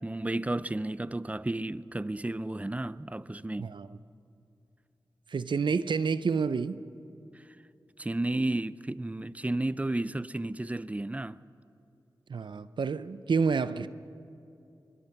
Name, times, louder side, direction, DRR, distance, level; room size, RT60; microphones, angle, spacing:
voice 1, 0.0-3.7 7.3-7.4 8.0-11.4, right 2 dB, 15° right, 0.6 m, -32 dB
voice 2, 3.6-4.0 5.3-6.8 12.3-13.9, right 5 dB, 75° right, 0.7 m, -29 dB
23.0 x 22.0 x 5.9 m
cardioid pair, 45°, 8 cm